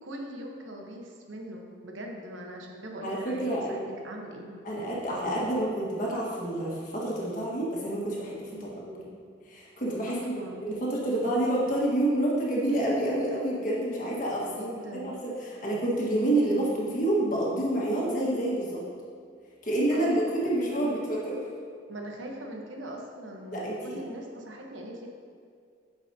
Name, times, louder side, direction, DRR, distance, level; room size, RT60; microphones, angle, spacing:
voice 1, 0.0-4.6 8.5-8.7 10.1-10.7 14.4-15.1 19.9-21.0 21.9-25.1, right 1 dB, 85° right, 1 dB, 1.0 m, -41 dB
voice 2, 3.0-3.9 4.6-9.1 9.5-10.3 10.6-14.4 15.0-18.8 19.6-21.4 23.5-23.9, right 1 dB, 45° left, -5 dB, 1.5 m, -28 dB
8.8 x 6.3 x 2.7 m, 2.2 s
head